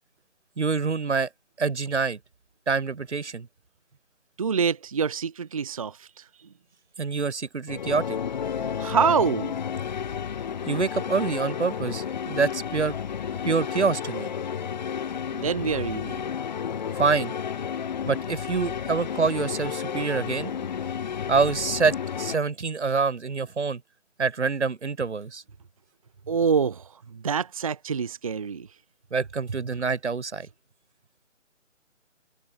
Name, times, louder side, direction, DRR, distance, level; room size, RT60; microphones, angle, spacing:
voice 1, 0.6-1.3 1.6-2.2 2.7-3.5 7.0-8.2 10.7-13.0 13.4-14.3 17.0-17.3 18.1-20.5 21.3-23.8 24.2-25.4 29.1-30.5, right 4 dB, 60° right, 2.0 m, -26 dB
voice 2, 4.4-6.2 8.6-9.5 15.3-16.2 26.3-28.7, right 6 dB, 25° right, 1.0 m, -26 dB
sound 1, 7.7-22.4, left 7 dB, 35° left, 4.0 m, -32 dB
figure-of-eight pair, 155°, 39 cm